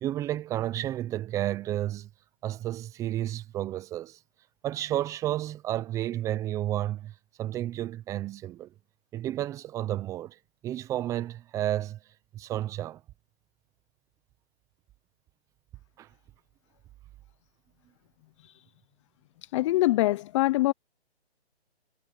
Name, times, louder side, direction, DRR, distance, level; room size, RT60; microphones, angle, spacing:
voice 1, 0.0-2.1 2.4-4.2 4.6-8.7 9.1-10.4 10.6-12.0 12.3-13.0 16.0-16.1, right 13 dB, 10° right, 0.6 m, -31 dB
voice 2, 19.4-20.7, left 17 dB, 30° left, 0.9 m, -24 dB
hypercardioid pair, 140°, 33 cm